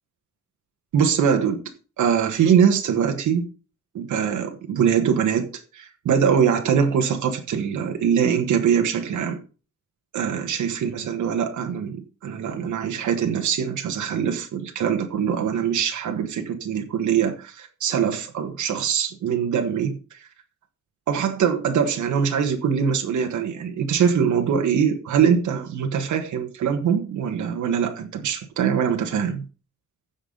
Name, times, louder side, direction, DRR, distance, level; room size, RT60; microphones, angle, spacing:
voice 1, 0.9-1.6 2.0-3.5 3.9-5.5 5.7-9.4 10.1-20.3 21.1-29.4, right 7 dB, 75° right, 1.5 m, -23 dB
15.0 x 5.6 x 3.9 m
wide cardioid pair, 180°, 30 cm